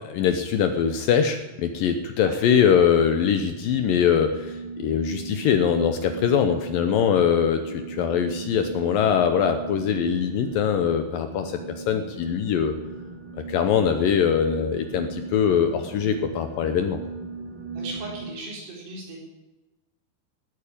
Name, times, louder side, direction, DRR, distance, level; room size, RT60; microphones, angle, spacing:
voice 1, 0.1-12.8 13.5-17.0, left 8 dB, 70° left, 7 dB, 2.3 m, -22 dB
sound 1, 1.3-18.3, right 4 dB, 60° right, 4.4 m, -38 dB
voice 2, 17.7-19.2, right 2 dB, 75° right, -2 dB, 6.1 m, -37 dB
17.5 x 9.3 x 8.7 m, 1.1 s
omnidirectional pair, 4.8 m